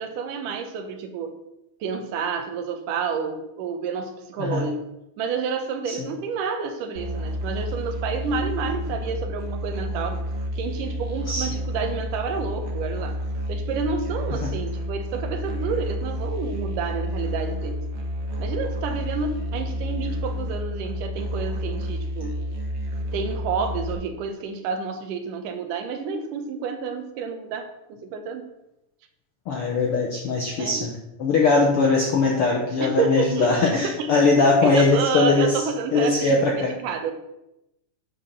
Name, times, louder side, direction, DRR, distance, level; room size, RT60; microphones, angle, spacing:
voice 1, 0.0-1.3 1.8-4.8 5.2-10.2 10.6-13.2 13.5-17.8 18.4-22.4 23.1-28.5 30.6-30.9 32.8-37.2, right 5 dB, 75° right, 7 dB, 2.4 m, -29 dB
Musical instrument, 7.0-23.9, equal, 55° right, 1.6 m, -30 dB
voice 2, 29.5-30.9 31.2-35.6 35.9-36.7, left 3 dB, 70° left, 0 dB, 1.3 m, -21 dB
9.4 x 4.3 x 6.6 m, 0.90 s
omnidirectional pair, 3.8 m